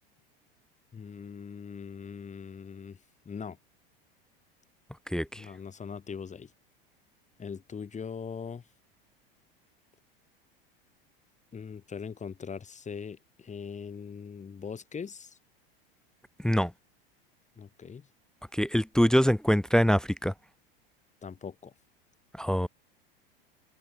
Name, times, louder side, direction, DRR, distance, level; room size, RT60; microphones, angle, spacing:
voice 1, 0.9-3.0 3.2-3.6 5.3-6.5 7.4-8.6 11.5-15.4 17.6-18.1 21.2-21.7, left 6 dB, 25° left, 6.8 m, -41 dB
voice 2, 5.1-5.5 16.4-16.7 18.5-20.3 22.4-22.7, equal, ahead, 0.4 m, -24 dB
open air
hypercardioid pair, 90°, 30 cm